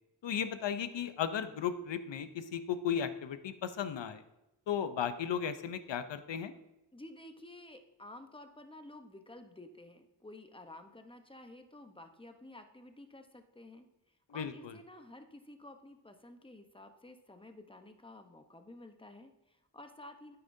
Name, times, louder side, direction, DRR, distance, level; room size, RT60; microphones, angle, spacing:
voice 1, 0.2-4.2 4.7-6.5 14.3-14.7, left 8 dB, 80° left, 11 dB, 0.7 m, -35 dB
voice 2, 6.9-20.4, left 1 dB, 10° left, 6 dB, 0.9 m, -52 dB
9.4 x 9.1 x 2.7 m, 0.92 s
cardioid pair, 55°, 43 cm